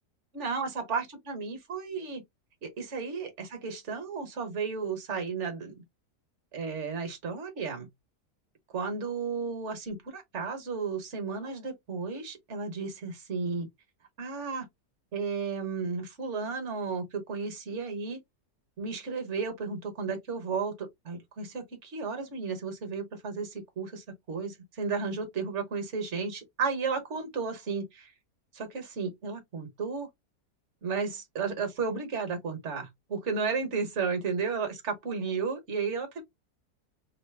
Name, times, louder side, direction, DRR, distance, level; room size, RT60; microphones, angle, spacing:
voice 1, 0.3-2.2 2.6-5.8 6.5-7.9 8.7-13.7 14.2-14.6 15.1-18.2 18.8-28.1 28.5-30.1 30.8-36.2, right 5 dB, 50° right, 1.2 m, -33 dB
3.2 x 2.0 x 3.2 m
omnidirectional pair, 1.7 m